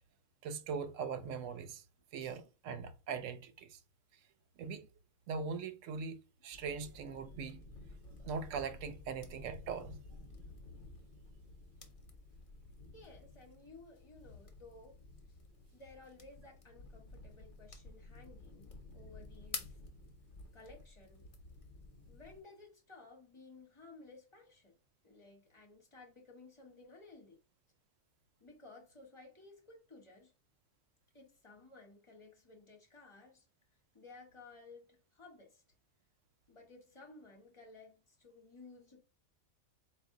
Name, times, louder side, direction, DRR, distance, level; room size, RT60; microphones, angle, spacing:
voice 1, 0.4-1.8 2.1-3.8 4.6-4.9 5.3-7.7 8.2-10.0, right 5 dB, 90° right, 0.9 m, -41 dB
sound 1, 6.5-22.4, left 3 dB, 50° left, 0.8 m, -52 dB
voice 2, 12.9-14.9 15.7-19.8 20.5-21.3 22.0-24.7 25.0-27.4 28.4-30.3 31.1-33.5 33.9-35.6 36.5-39.0, left 3 dB, 25° left, 1.0 m, -57 dB
4.1 x 2.6 x 3.6 m
omnidirectional pair, 1.3 m